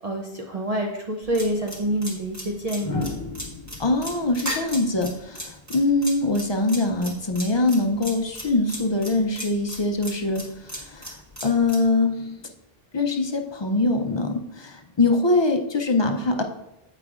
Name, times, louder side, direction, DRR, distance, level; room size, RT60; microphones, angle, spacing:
voice 1, 0.0-3.1, right 1 dB, 45° right, 1 dB, 0.6 m, -27 dB
sound 1, 1.2-1.4 2.8-5.8 7.4-7.7, left 3 dB, 75° left, 1.0 m, -35 dB
sound 2, 1.3-11.8, equal, 15° right, 1.2 m, -35 dB
voice 2, 3.8-11.2 11.4-12.4 12.9-16.4, left 2 dB, 40° left, 4 dB, 0.4 m, -23 dB
8.0 x 4.9 x 2.4 m, 0.87 s
omnidirectional pair, 1.0 m